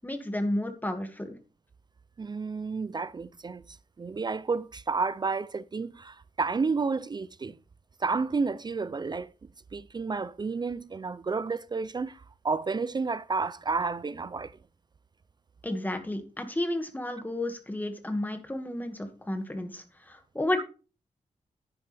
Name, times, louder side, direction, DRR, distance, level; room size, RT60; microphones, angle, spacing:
voice 1, 0.0-1.4 15.6-20.6, left 1 dB, 15° left, 1.9 m, -32 dB
voice 2, 2.2-7.6 8.0-9.3 9.7-14.5, right 4 dB, 35° right, 0.4 m, -31 dB
10.5 x 9.9 x 3.4 m
wide cardioid pair, 110°, 13 cm